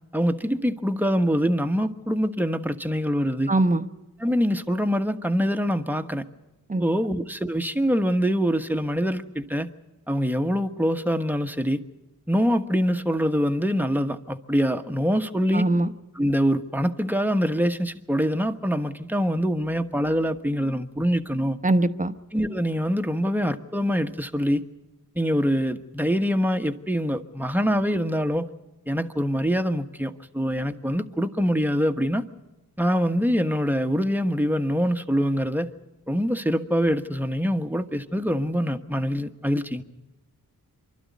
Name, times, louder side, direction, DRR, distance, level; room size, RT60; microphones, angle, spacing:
voice 1, 0.1-3.5 4.2-6.2 6.8-9.7 10.1-11.8 12.3-15.7 16.1-21.6 22.3-24.6 25.1-28.5 28.9-32.2 32.8-35.7 36.1-39.8, equal, 5° right, 1.2 m, -24 dB
voice 2, 3.5-3.8 6.7-6.8 15.5-15.9 21.6-22.1, right 2 dB, 20° right, 1.0 m, -21 dB
25.0 x 12.0 x 9.4 m
cardioid pair, 50°, 37 cm